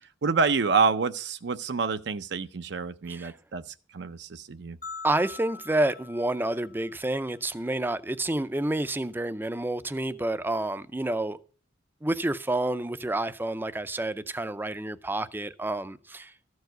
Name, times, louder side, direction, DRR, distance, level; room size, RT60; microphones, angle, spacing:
voice 1, 0.2-4.8, right 5 dB, 65° right, 0.5 m, -27 dB
sound 1, 4.8-7.2, left 5 dB, 45° left, 0.9 m, -43 dB
voice 2, 5.0-11.4 12.0-16.3, right 1 dB, 10° right, 0.4 m, -29 dB
14.0 x 4.8 x 7.8 m
head